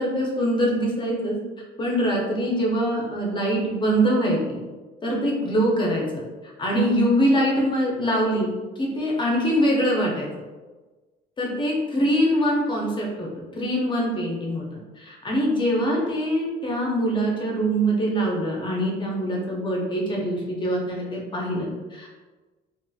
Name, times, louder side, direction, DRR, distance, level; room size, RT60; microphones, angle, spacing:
voice 1, 0.0-1.4 1.8-4.6 5.0-8.5 8.8-10.3 11.4-13.3 13.5-14.6 15.0-22.1, equal, 30° left, -2 dB, 0.6 m, -23 dB
2.6 x 2.5 x 2.3 m, 1.3 s
cardioid pair, 110°, 17 cm